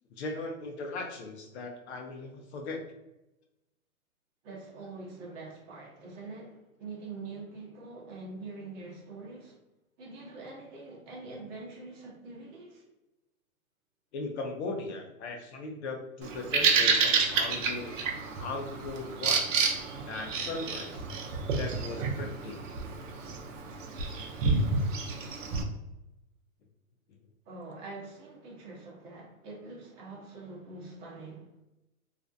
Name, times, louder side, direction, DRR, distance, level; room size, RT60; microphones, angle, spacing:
voice 1, 0.2-2.8 14.1-18.0 18.4-19.4 20.1-21.0 21.6-22.8, left 3 dB, 50° left, 2 dB, 0.5 m, -38 dB
voice 2, 4.4-9.6 10.0-12.8 27.5-31.5, right 3 dB, 30° right, -3 dB, 0.9 m, -44 dB
Bird vocalization bird call bird song, 16.2-25.6, right 4 dB, 60° right, 0.7 m, -29 dB
2.5 x 2.0 x 2.5 m, 0.96 s
hypercardioid pair, 135°, 43 cm